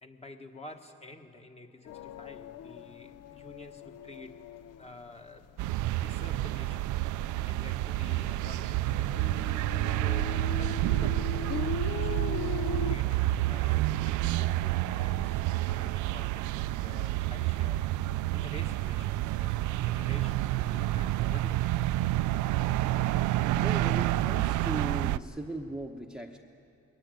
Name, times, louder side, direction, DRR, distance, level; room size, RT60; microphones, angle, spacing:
voice 1, 0.0-4.4 4.8-5.6 6.0-6.9 7.5-9.2 9.9-17.8 18.3-21.8, left 2 dB, 20° left, 4 dB, 1.5 m, -49 dB
sound 1, 1.8-5.8 6.1-6.7 7.1-7.2 7.5-13.0, left 7 dB, 60° left, 0.5 m, -39 dB
sound 2, 5.6-25.2, right 15 dB, 85° right, 0.5 m, -29 dB
voice 2, 23.5-26.4, right 2 dB, 5° right, 3 dB, 0.9 m, -38 dB
21.5 x 19.0 x 9.2 m, 2.8 s
cardioid pair, 115°, 29 cm